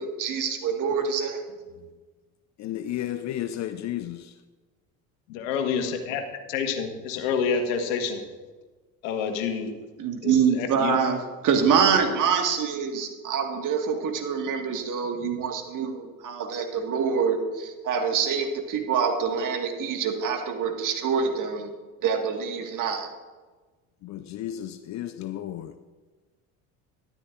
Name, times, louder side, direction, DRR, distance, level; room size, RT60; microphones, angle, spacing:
voice 1, 0.0-1.4 10.0-21.7 22.0-23.1, right 6 dB, 50° right, 1.8 m, -25 dB
voice 2, 2.6-4.4 24.0-25.8, left 12 dB, 45° left, 0.6 m, -33 dB
voice 3, 5.3-6.2 6.5-8.2 9.0-9.7 10.2-11.0 15.2-15.3, left 6 dB, 70° left, 1.5 m, -28 dB
13.0 x 12.0 x 2.5 m
hypercardioid pair, 70°, 41 cm